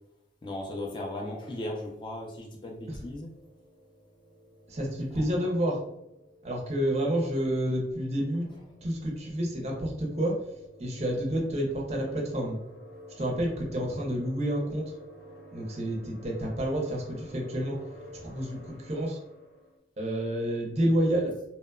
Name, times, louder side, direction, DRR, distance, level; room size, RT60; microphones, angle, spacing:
voice 1, 0.4-3.3 5.1-5.7 8.3-8.6, left 1 dB, 25° left, -1 dB, 0.3 m, -37 dB
sound 1, 3.3-19.8, equal, 60° left, 0.8 m, -52 dB
voice 2, 4.7-5.8 6.4-8.5 8.8-10.4 10.8-12.6 13.2-14.9 15.5-17.8 18.2-19.2 20.0-21.4, equal, 35° right, 0 dB, 0.5 m, -29 dB
2.8 x 2.1 x 2.2 m, 0.84 s
head